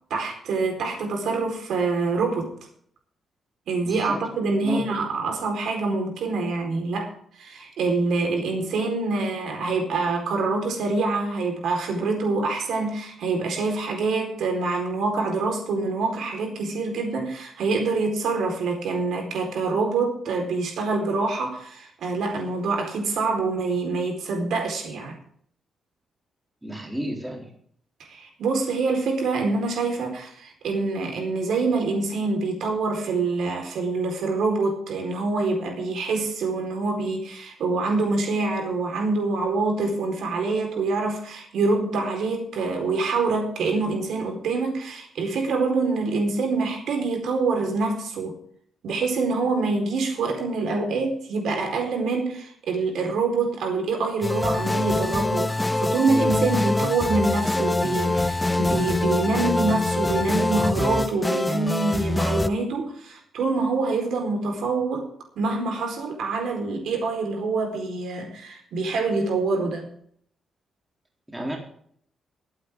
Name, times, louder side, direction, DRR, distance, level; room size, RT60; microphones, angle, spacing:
voice 1, 0.1-2.5 3.7-7.1 7.4-25.2 28.1-48.4 48.8-65.1 65.4-69.9, right 3 dB, 80° right, 2 dB, 4.5 m, -25 dB
voice 2, 3.8-4.2 4.6-4.8 26.6-27.5 71.3-71.6, equal, 10° right, 0 dB, 3.7 m, -31 dB
sound 1, 54.2-62.5, left 2 dB, 10° left, 0.6 m, -24 dB
22.5 x 8.9 x 3.8 m, 0.63 s
cardioid pair, 135°, 0 cm